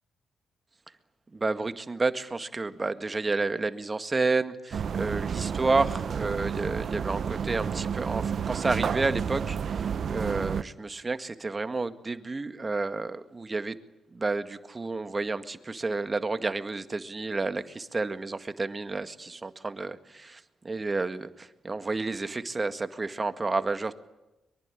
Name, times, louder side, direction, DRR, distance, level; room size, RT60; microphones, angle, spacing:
voice 1, 1.3-13.8 14.1-23.9, right 3 dB, 30° right, 10 dB, 1.9 m, -30 dB
sound 1, 4.7-10.6, right 7 dB, 60° right, 0.9 m, -31 dB
24.0 x 23.5 x 10.0 m, 1.0 s
hypercardioid pair, 45°, 0 cm